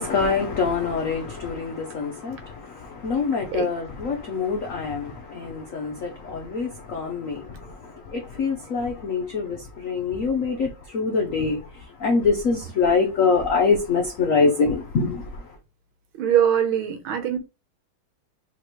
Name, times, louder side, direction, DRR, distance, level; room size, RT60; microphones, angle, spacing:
voice 1, 0.0-7.5 8.1-11.6 12.0-15.3, left 4 dB, 80° left, 0.7 m, -24 dB
voice 2, 16.2-17.4, right 9 dB, 70° right, 1.7 m, -22 dB
5.7 x 3.0 x 3.1 m
omnidirectional pair, 2.4 m